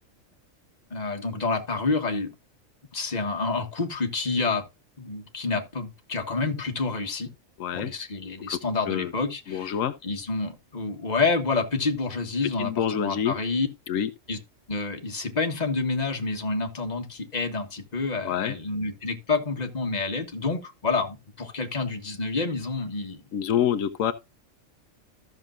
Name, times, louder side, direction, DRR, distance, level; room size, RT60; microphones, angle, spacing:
voice 1, 0.9-2.3 2.9-4.7 5.0-7.3 7.7-9.8 10.0-13.7 14.3-14.4 14.7-23.2, left 3 dB, 35° left, 1.6 m, -28 dB
voice 2, 7.6-7.9 8.5-8.6 8.9-9.1 9.5-9.9 12.6-13.4 13.9-14.1 18.2-18.6 23.3-24.1, left 9 dB, 85° left, 1.1 m, -26 dB
14.0 x 6.6 x 2.5 m
omnidirectional pair, 1.3 m